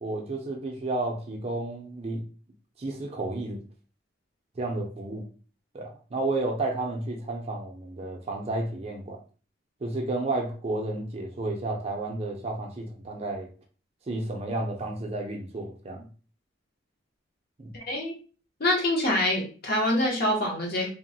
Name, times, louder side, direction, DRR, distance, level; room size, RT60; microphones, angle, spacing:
voice 1, 0.0-2.2 2.8-3.6 4.6-5.3 5.7-9.2 9.8-13.5 14.1-16.1 17.6-17.7, right 2 dB, 30° right, 0.4 m, -32 dB
voice 2, 17.7-18.2 18.6-20.9, left 1 dB, 50° left, 0.7 m, -25 dB
2.8 x 2.0 x 2.7 m
head